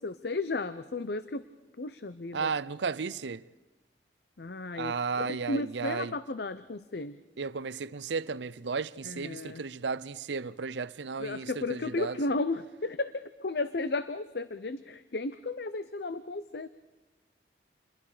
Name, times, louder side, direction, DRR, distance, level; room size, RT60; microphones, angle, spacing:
voice 1, 0.0-1.5 1.8-2.5 4.4-7.2 9.0-9.6 11.2-16.7, left 2 dB, 60° left, 0.7 m, -34 dB
voice 2, 2.3-3.4 4.7-6.1 7.4-12.2, right 5 dB, 75° right, 0.6 m, -34 dB
28.0 x 21.5 x 5.0 m
head